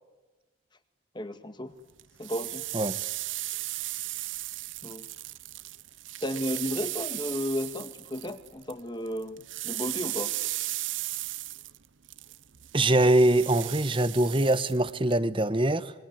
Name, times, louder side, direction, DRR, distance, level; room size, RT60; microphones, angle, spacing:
voice 1, 1.1-1.7 2.2-2.6 4.8-5.0 6.2-10.3, equal, 25° left, 10 dB, 1.8 m, -33 dB
sound 1, 2.0-8.8 9.1-15.2, right 16 dB, 85° right, 0.8 m, -36 dB
voice 2, 12.7-15.9, right 1 dB, 25° right, 14 dB, 1.2 m, -23 dB
26.5 x 22.5 x 9.4 m, 1.2 s
head